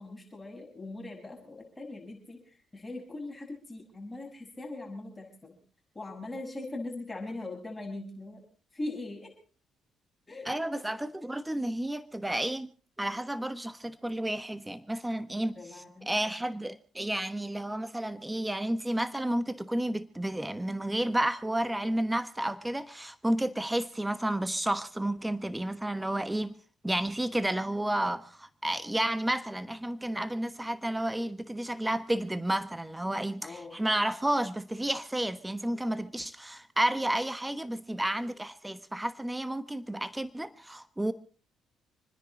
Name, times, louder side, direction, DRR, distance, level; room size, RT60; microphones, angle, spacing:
voice 1, 0.0-5.6 5.9-8.4 8.7-9.3 10.3-10.6 15.5-16.1 33.4-33.8, left 2 dB, 20° left, 6.4 m, -40 dB
voice 2, 10.4-12.7 13.0-26.5 26.8-41.1, right 1 dB, 10° right, 1.2 m, -31 dB
28.0 x 10.0 x 4.2 m
hypercardioid pair, 50°, 0 cm